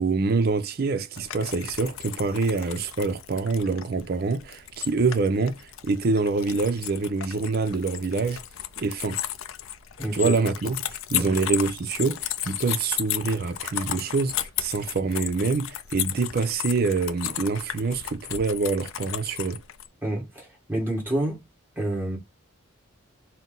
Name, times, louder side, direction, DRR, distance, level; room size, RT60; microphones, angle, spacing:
voice 1, 0.0-8.4 8.8-9.2 10.1-19.6, right 4 dB, 45° right, 0.5 m, -26 dB
sound 1, 1.1-19.9, left 12 dB, 70° left, 0.4 m, -34 dB
voice 2, 10.0-10.3 11.1-11.3 20.0-21.4 21.7-22.2, right 1 dB, 10° right, 1.6 m, -28 dB
4.2 x 2.0 x 3.7 m
head